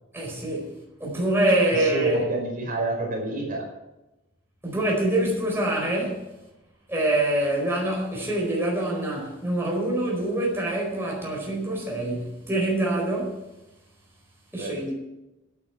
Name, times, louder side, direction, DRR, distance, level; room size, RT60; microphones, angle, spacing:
voice 1, 0.1-0.7 1.0-2.2 4.6-6.2 6.9-13.4 14.5-14.9, right 1 dB, 10° right, 4.5 m, -25 dB
voice 2, 1.8-3.7 14.6-14.7, right 2 dB, 45° right, 4.7 m, -28 dB
11.0 x 9.4 x 8.7 m
head